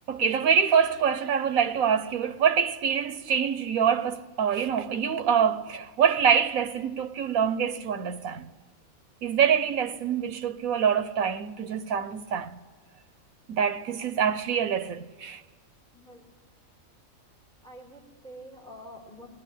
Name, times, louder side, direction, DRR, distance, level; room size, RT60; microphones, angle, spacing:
voice 1, 0.1-8.5 9.2-12.6 13.5-15.4, right 7 dB, 90° right, 1.3 m, -25 dB
voice 2, 17.6-19.3, equal, 5° left, 4.1 m, -46 dB
20.0 x 18.5 x 10.0 m
omnidirectional pair, 1.4 m